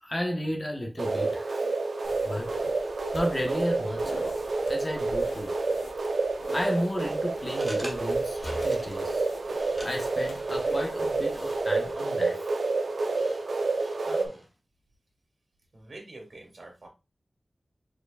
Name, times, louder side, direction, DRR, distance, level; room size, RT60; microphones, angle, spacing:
voice 1, 0.0-1.7 2.2-2.6 2.8-4.2 4.7-5.5 6.5-9.2 9.8-12.4, equal, 30° left, 1.1 m, -33 dB
sound 1, 1.0-14.3, right 3 dB, 80° right, 0.6 m, -29 dB
sound 2, 2.0-11.9, left 2 dB, 90° left, 0.9 m, -47 dB
sound 3, 7.2-14.5, equal, 5° right, 1.5 m, -48 dB
voice 2, 13.6-14.5 15.7-16.9, right 2 dB, 65° right, 2.1 m, -46 dB
4.7 x 4.5 x 2.4 m
wide cardioid pair, 70°, 0 cm